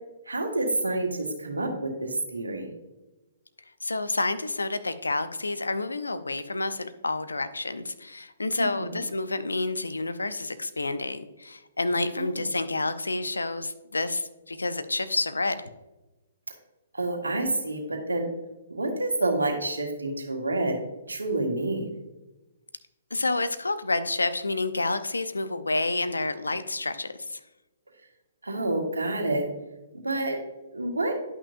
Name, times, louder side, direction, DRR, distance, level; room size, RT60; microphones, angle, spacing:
voice 1, 0.3-2.7 8.6-9.0 12.2-12.5 16.9-18.3 18.7-20.8 21.1-21.9 28.4-29.5 29.9-30.4 30.7-31.1, right 2 dB, 80° right, 1 dB, 1.6 m, -28 dB
voice 2, 3.8-15.7 23.1-27.4, left 2 dB, 80° left, 11 dB, 0.6 m, -29 dB
10.5 x 5.9 x 2.6 m, 1.0 s
figure-of-eight pair, 125°, 0 cm